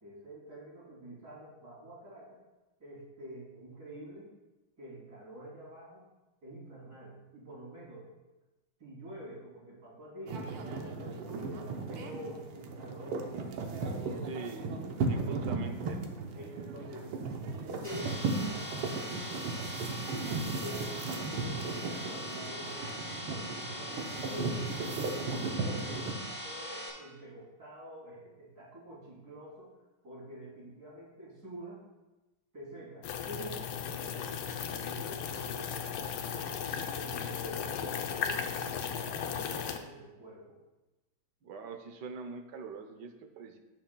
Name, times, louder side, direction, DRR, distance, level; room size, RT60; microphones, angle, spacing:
voice 1, 0.0-2.4 2.8-4.3 4.8-6.0 6.4-8.1 8.8-13.3 13.7-14.4 14.9-15.7 16.3-17.1 17.6-19.1 20.3-22.8 23.7-29.7 30.0-31.8 32.5-33.7 33.9-34.5 34.8-40.6, right 1 dB, 45° right, -7 dB, 3.6 m, -47 dB
sound 1, 10.3-26.1, right 3 dB, 90° right, 1.7 m, -36 dB
voice 2, 14.3-14.7 15.1-16.0 41.4-43.6, right 4 dB, 65° right, 6 dB, 1.2 m, -43 dB
sound 2, 17.8-26.9, equal, 25° left, 2.9 m, -41 dB
sound 3, 33.0-39.8, left 7 dB, 85° left, 1.6 m, -36 dB
16.5 x 6.3 x 2.2 m, 1.1 s
omnidirectional pair, 2.3 m